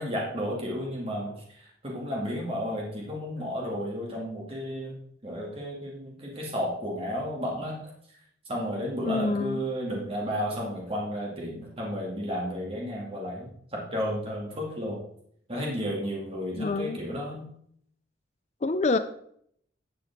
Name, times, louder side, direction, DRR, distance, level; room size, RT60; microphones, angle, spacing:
voice 1, 0.0-7.8 8.5-15.0 15.5-17.5, equal, 30° right, -3 dB, 2.3 m, -33 dB
voice 2, 9.0-9.6 16.5-17.0 18.6-19.0, left 3 dB, 35° left, 11 dB, 0.4 m, -26 dB
11.0 x 7.5 x 3.5 m, 0.67 s
head